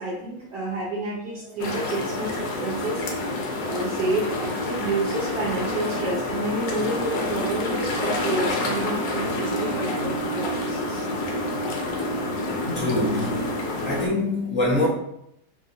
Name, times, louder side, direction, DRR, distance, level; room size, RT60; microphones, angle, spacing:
voice 1, 0.0-3.0 3.3-11.2, right 2 dB, 75° right, -5 dB, 1.4 m, -30 dB
sound 1, 1.6-14.1, left 1 dB, 80° left, 1.3 m, -28 dB
voice 2, 12.6-13.3 13.8-14.9, left 2 dB, 15° right, -9 dB, 0.4 m, -24 dB
3.3 x 2.8 x 2.6 m, 0.77 s
omnidirectional pair, 1.9 m